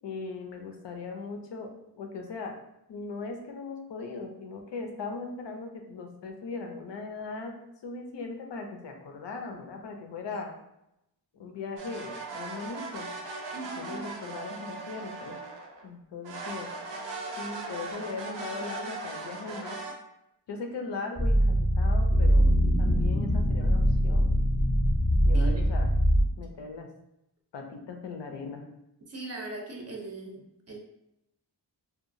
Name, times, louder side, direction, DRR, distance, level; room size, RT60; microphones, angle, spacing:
voice 1, 0.0-2.5 2.9-7.5 7.8-10.5 11.3-13.1 13.8-15.4 15.8-19.8 20.5-22.5 22.8-24.3 25.2-25.9 26.4-26.9 27.5-28.6, left 4 dB, 80° left, 3 dB, 0.6 m, -39 dB
sound 1, 11.8-15.9 16.2-19.9, right 3 dB, 85° right, 0.6 m, -39 dB
voice 2, 13.5-14.0 25.3-25.5 29.1-30.8, right 1 dB, 40° right, 0 dB, 0.5 m, -39 dB
sound 2, 21.2-26.2, equal, 15° left, 0.6 m, -23 dB
2.8 x 2.3 x 2.5 m, 0.85 s
wide cardioid pair, 130°, 42 cm